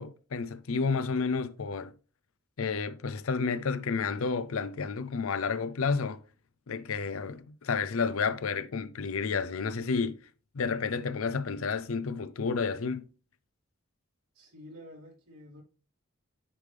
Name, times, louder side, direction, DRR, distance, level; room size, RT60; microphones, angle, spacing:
voice 1, 0.0-1.9 2.6-6.2 6.7-10.2 10.5-13.1, left 5 dB, 70° left, 0.5 m, -31 dB
voice 2, 14.3-15.6, equal, 85° right, 3.6 m, -49 dB
9.9 x 3.4 x 3.3 m
head